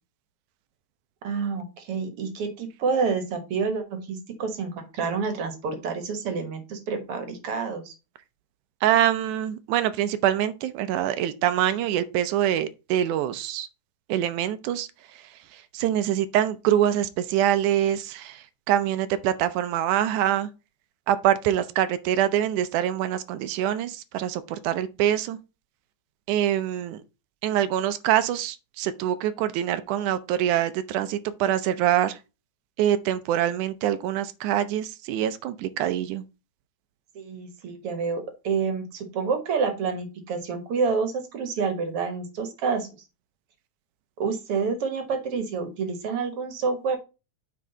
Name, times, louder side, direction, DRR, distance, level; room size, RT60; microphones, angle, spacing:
voice 1, 1.2-8.0 37.2-42.9 44.2-47.0, right 5 dB, 55° right, 2.0 m, -28 dB
voice 2, 8.8-13.7 14.1-14.9 15.7-20.5 21.1-25.4 26.3-27.0 27.4-32.2 32.8-36.2, right 11 dB, 90° right, 2.2 m, -24 dB
8.4 x 4.4 x 3.9 m
omnidirectional pair, 3.4 m